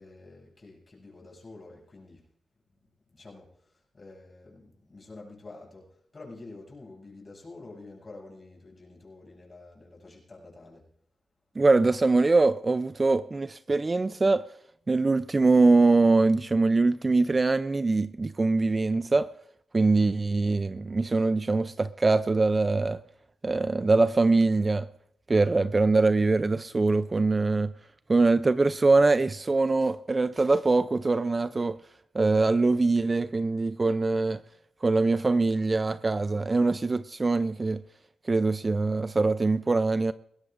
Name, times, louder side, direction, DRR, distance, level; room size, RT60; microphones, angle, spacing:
voice 1, 0.0-2.2 3.1-10.9, left 2 dB, 35° left, 6.9 m, -48 dB
voice 2, 11.6-14.5 14.9-19.3 19.7-23.0 23.4-24.9 25.3-27.7 28.1-31.8 32.1-34.4 34.8-37.8 38.2-40.1, right 3 dB, 30° right, 0.4 m, -23 dB
21.0 x 17.0 x 2.5 m
cardioid pair, 75°, 0 cm